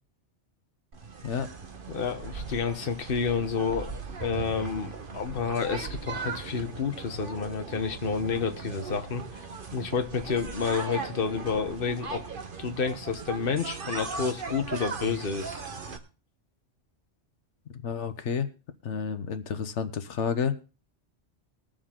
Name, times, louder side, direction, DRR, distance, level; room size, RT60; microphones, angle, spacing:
sound 1, 0.9-16.0, right 4 dB, 50° right, 1.4 m, -38 dB
voice 1, 1.9-3.9 4.2-9.2 9.7-12.2 12.6-15.6, left 6 dB, 55° left, 6 dB, 1.3 m, -30 dB
voice 2, 17.7-18.5 18.8-20.6, left 6 dB, 90° left, 10 dB, 1.2 m, -30 dB
21.0 x 7.0 x 3.7 m, 0.34 s
omnidirectional pair, 1.2 m